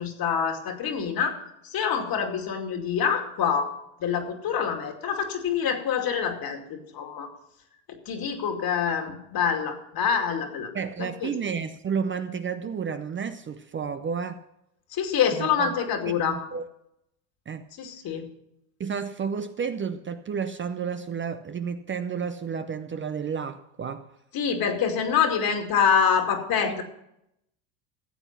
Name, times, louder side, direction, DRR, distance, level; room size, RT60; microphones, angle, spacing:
voice 1, 0.0-3.7 4.0-7.3 7.9-10.7 11.0-11.3 14.9-16.4 17.8-18.3 24.3-26.8, left 7 dB, 45° left, 5 dB, 2.5 m, -26 dB
voice 2, 10.7-14.5 15.4-15.7 16.1-16.6 17.5-17.7 18.8-24.1 26.6-26.8, right 6 dB, 25° right, 10 dB, 0.6 m, -31 dB
14.5 x 8.0 x 5.8 m, 0.80 s
supercardioid pair, 95°, 48 cm